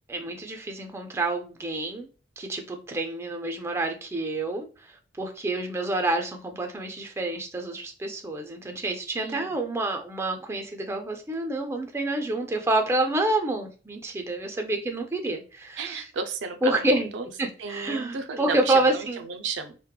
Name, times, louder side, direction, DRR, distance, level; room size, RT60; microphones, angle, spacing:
voice 1, 0.1-2.1 2.4-4.7 5.2-16.0 16.6-17.1 17.4-19.2, right 2 dB, 15° right, 4 dB, 0.4 m, -28 dB
voice 2, 9.2-9.5 15.8-17.3 17.6-19.8, right 5 dB, 85° right, 7 dB, 0.4 m, -33 dB
2.9 x 2.1 x 2.2 m, 0.36 s
head